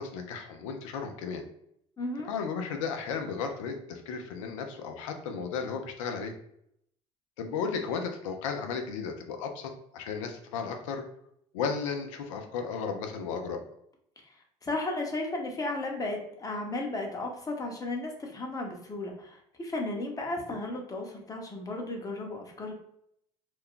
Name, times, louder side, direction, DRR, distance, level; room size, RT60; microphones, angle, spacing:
voice 1, 0.0-1.4 2.3-6.3 7.4-11.0 11.5-13.6, left 5 dB, 80° left, 5 dB, 0.5 m, -34 dB
voice 2, 2.0-2.3 14.6-22.7, left 2 dB, 20° left, 1 dB, 0.8 m, -34 dB
2.4 x 2.2 x 3.6 m, 0.73 s
hypercardioid pair, 70°, 16 cm